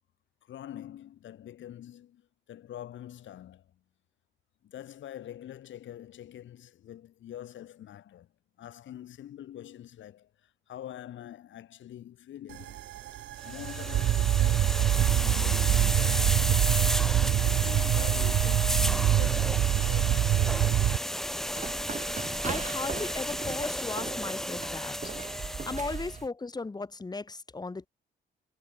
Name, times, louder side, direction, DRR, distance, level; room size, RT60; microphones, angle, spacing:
voice 1, 0.4-3.8 4.6-8.3 8.6-12.8 13.4-16.8 17.4-20.7, left 11 dB, 70° left, 3.5 m, -45 dB
sound 1, 12.5-21.0, right 13 dB, 70° right, 0.7 m, -25 dB
sound 2, 13.4-26.2, equal, ahead, 0.5 m, -33 dB
sound 3, 21.2-26.3, right 5 dB, 35° right, 4.9 m, -39 dB
voice 2, 22.4-25.2 25.5-27.9, left 3 dB, 20° left, 1.4 m, -36 dB
cardioid pair, 90°, 20 cm